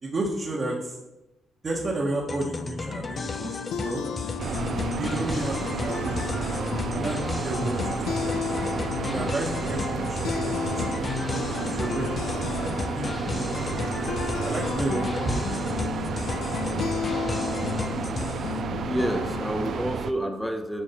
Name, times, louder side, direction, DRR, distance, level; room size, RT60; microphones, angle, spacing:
voice 1, 0.0-0.9 1.6-4.0 5.0-6.6 6.9-8.5 9.0-13.6 14.4-15.9, right 2 dB, 40° right, -3 dB, 1.5 m, -32 dB
sound 1, 2.3-18.6, left 3 dB, 30° left, 0.6 m, -35 dB
sound 2, 2.9-19.8, left 7 dB, 75° left, 0.6 m, -33 dB
sound 3, 4.4-20.1, right 6 dB, 60° right, 0.5 m, -32 dB
voice 2, 18.9-20.8, right 1 dB, ahead, 6 dB, 1.0 m, -29 dB
9.2 x 4.6 x 4.3 m, 0.97 s
cardioid pair, 90°, 0 cm